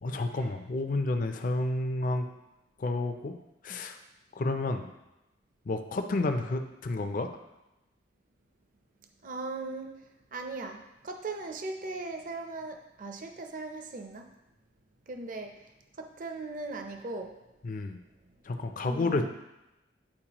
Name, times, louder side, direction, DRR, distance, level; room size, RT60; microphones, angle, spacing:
voice 1, 0.0-2.3 2.8-3.3 3.6-4.0 4.3-4.9 5.7-7.3 17.6-18.0 18.5-19.3, left 2 dB, 45° left, 6 dB, 0.4 m, -30 dB
voice 2, 9.2-9.9 10.3-10.8 11.0-14.3 15.1-15.5 16.0-17.3 18.8-19.3, right 3 dB, 45° right, 4 dB, 0.6 m, -38 dB
8.6 x 4.4 x 2.9 m, 0.96 s
head